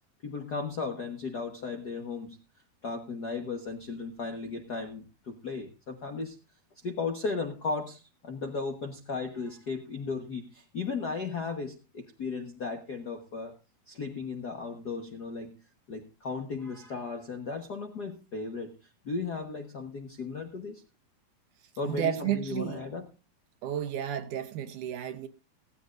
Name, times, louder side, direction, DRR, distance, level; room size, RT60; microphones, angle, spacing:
voice 1, 0.2-2.4 2.8-6.4 6.8-13.5 13.9-15.6 15.9-18.8 19.0-20.8 21.8-23.1, left 4 dB, 85° left, 0.8 m, -35 dB
voice 2, 21.9-22.8 23.6-25.3, right 10 dB, 70° right, 2.2 m, -32 dB
16.5 x 15.0 x 2.6 m
omnidirectional pair, 4.1 m